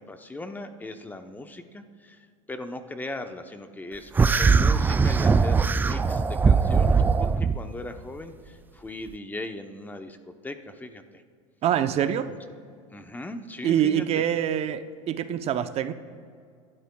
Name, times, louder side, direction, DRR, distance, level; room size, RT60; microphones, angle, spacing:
voice 1, 0.0-2.2 2.5-11.2 12.0-12.4 12.9-14.2, left 2 dB, 10° left, 0.8 m, -39 dB
sound 1, 4.2-7.6, right 5 dB, 10° right, 0.3 m, -20 dB
voice 2, 11.6-12.3 13.6-15.9, right 10 dB, 40° right, 0.7 m, -25 dB
24.5 x 12.0 x 2.3 m
supercardioid pair, 115°, 16 cm